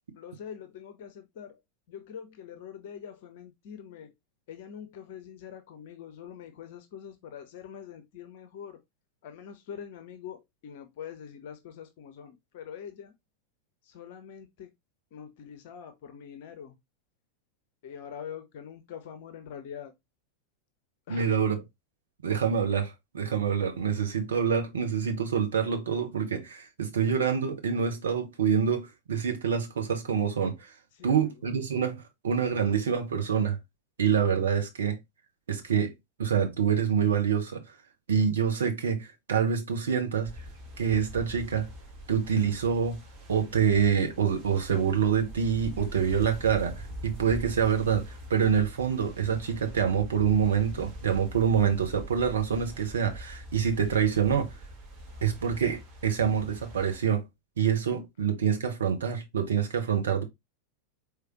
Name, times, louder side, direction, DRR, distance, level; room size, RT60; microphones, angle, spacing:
voice 1, 0.2-1.5 1.9-4.1 4.5-8.8 9.2-13.1 13.9-14.7 15.1-16.7 17.8-19.9 21.1-21.4 31.0-31.3, left 8 dB, 50° left, 0.6 m, -44 dB
voice 2, 21.1-21.6 22.2-30.6 31.0-33.6 34.0-35.0 35.5-35.9 36.2-37.6 38.1-40.3 40.8-41.7 42.1-43.0 43.3-54.5 55.2-57.2 57.6-60.2, right 7 dB, 65° right, 1.1 m, -26 dB
sound 1, 40.3-57.0, equal, 35° right, 1.5 m, -43 dB
4.8 x 3.4 x 3.0 m
figure-of-eight pair, 90°, 0 cm